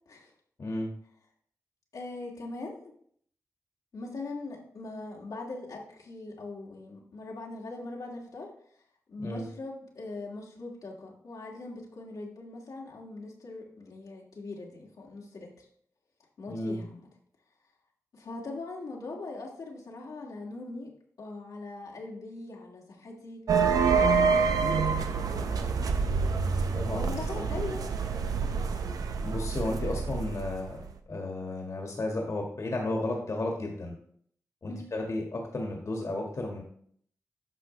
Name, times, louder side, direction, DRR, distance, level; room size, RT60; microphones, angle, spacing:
voice 1, 0.6-0.9 9.2-9.4 16.5-16.8 26.7-27.5 29.2-30.8 31.1-33.9 34.6-36.6, left 2 dB, 55° left, 0 dB, 1.8 m, -33 dB
voice 2, 1.9-2.9 3.9-8.5 9.1-15.7 16.4-17.0 18.1-20.9 21.2-23.4 23.8-25.9 26.8-27.9 34.7-34.8, left 3 dB, 80° left, -3 dB, 2.1 m, -41 dB
sound 1, 23.5-30.9, right 5 dB, 90° right, 0.7 m, -27 dB
10.0 x 6.1 x 3.2 m, 0.62 s
cardioid pair, 65°, 6 cm